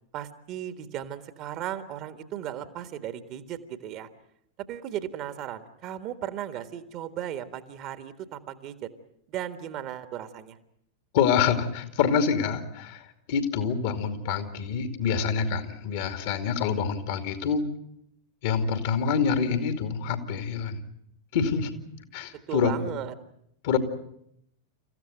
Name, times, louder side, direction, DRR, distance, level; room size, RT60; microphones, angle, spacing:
voice 1, 0.1-4.1 4.7-8.9 9.3-10.6 22.5-23.1, right 11 dB, 40° right, 11 dB, 1.7 m, -36 dB
voice 2, 11.1-13.0 13.3-17.6 18.4-20.8 21.3-21.7 22.1-22.9 23.6-23.8, left 6 dB, 50° left, 8 dB, 2.5 m, -26 dB
28.5 x 15.0 x 9.2 m, 0.75 s
figure-of-eight pair, 90°, 0 cm